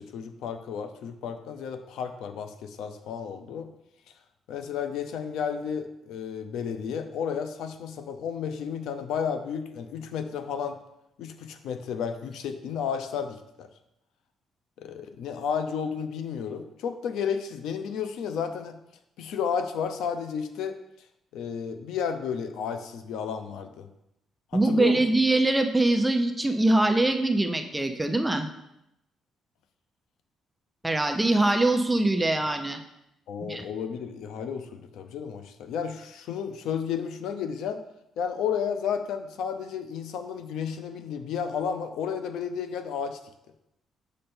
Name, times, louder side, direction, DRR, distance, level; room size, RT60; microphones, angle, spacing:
voice 1, 0.0-3.7 4.5-10.8 11.2-13.7 14.8-18.8 19.2-20.8 21.3-23.9 24.5-25.0 33.3-37.8 38.2-43.2, left 7 dB, 85° left, 8 dB, 0.6 m, -32 dB
voice 2, 24.5-28.5 30.8-32.8 33.5-33.6, right 2 dB, 10° right, 6 dB, 0.5 m, -23 dB
6.5 x 5.2 x 4.4 m, 0.83 s
cardioid pair, 150°, 0 cm